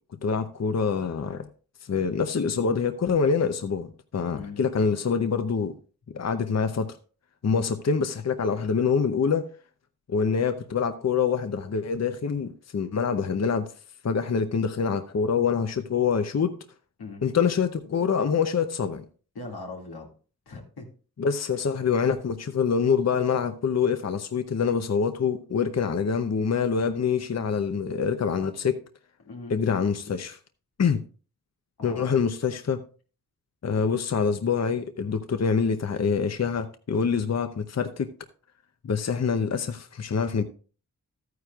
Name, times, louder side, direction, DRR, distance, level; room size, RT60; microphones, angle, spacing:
voice 1, 0.2-1.5 1.8-5.7 6.1-6.9 7.4-9.5 10.1-13.7 14.0-16.6 17.2-19.0 21.2-28.8 29.5-30.4 30.8-31.0 31.8-32.8 33.6-38.1 38.8-40.4, left 6 dB, 45° left, 0.7 m, -25 dB
voice 2, 4.3-4.6 7.6-7.8 17.0-17.2 19.3-20.1 20.5-20.9 29.2-29.6 31.8-32.1, left 3 dB, 90° left, 2.2 m, -40 dB
13.0 x 9.4 x 2.4 m
cardioid pair, 65°, 37 cm